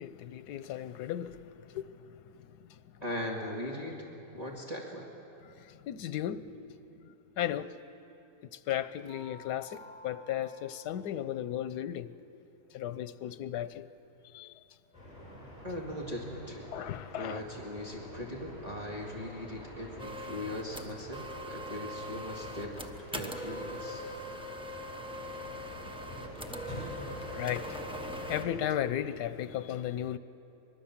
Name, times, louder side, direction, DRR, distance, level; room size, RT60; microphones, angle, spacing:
voice 1, 0.0-1.4 1.7-1.9 5.8-6.4 7.4-7.7 8.7-12.1 12.7-13.9 14.3-14.5 16.7-17.4 27.1-30.2, left 11 dB, 90° left, 1.3 m, -35 dB
voice 2, 3.0-4.0 4.3-5.1 15.6-16.7 17.1-24.0, left 1 dB, 25° right, 2.3 m, -39 dB
sound 1, 8.8-11.2, left 1 dB, 55° left, 6.0 m, -53 dB
sound 2, 14.9-28.5, equal, 20° left, 7.9 m, -46 dB
sound 3, 20.0-28.4, equal, 5° right, 0.9 m, -41 dB
24.5 x 21.0 x 7.3 m
omnidirectional pair, 1.7 m